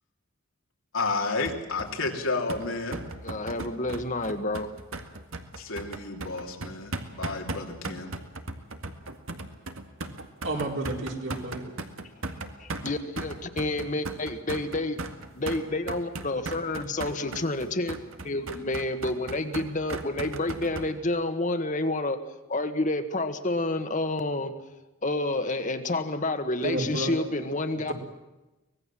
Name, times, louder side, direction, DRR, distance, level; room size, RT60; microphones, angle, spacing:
voice 1, 0.9-3.0 5.6-8.1, left 3 dB, 85° left, 3.3 m, -31 dB
sound 1, 1.5-20.9, right 2 dB, 90° right, 1.9 m, -37 dB
voice 2, 3.2-4.7 12.6-15.0 15.3-17.9 18.2-22.2 22.5-24.5 25.0-27.9, left 2 dB, 40° left, 1.5 m, -29 dB
voice 3, 10.4-11.7 26.6-27.1 27.9-28.0, right 2 dB, 65° right, 4.2 m, -31 dB
24.5 x 19.5 x 7.6 m
head